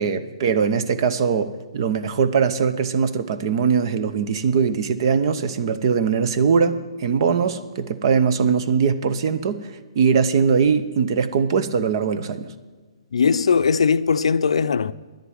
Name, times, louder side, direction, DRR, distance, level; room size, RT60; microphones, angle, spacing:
voice 1, 0.0-9.6 9.9-12.5, right 6 dB, 50° right, 0.9 m, -21 dB
voice 2, 13.1-14.9, left 5 dB, 80° left, 0.5 m, -19 dB
10.5 x 8.1 x 8.9 m
hypercardioid pair, 145°, 3 cm